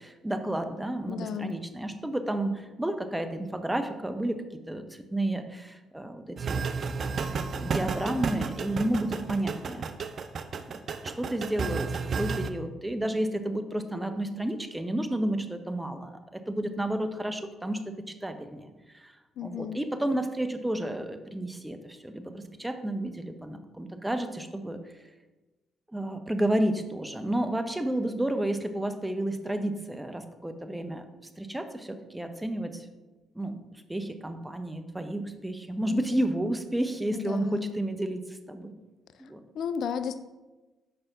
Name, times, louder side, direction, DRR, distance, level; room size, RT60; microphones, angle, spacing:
voice 1, 0.0-9.8 11.0-17.9 18.2-19.1 19.4-25.0 25.9-31.0 31.4-32.9 33.3-38.7 39.2-39.4, right 1 dB, 10° right, 8 dB, 0.7 m, -31 dB
voice 2, 1.1-1.6 19.4-19.8 35.9-36.0 37.1-37.7 39.6-40.2, left 7 dB, 65° left, 11 dB, 0.3 m, -33 dB
sound 1, 6.4-12.5, right 5 dB, 55° right, 0.4 m, -32 dB
5.6 x 5.1 x 3.5 m, 1.1 s
hypercardioid pair, 50°, 0 cm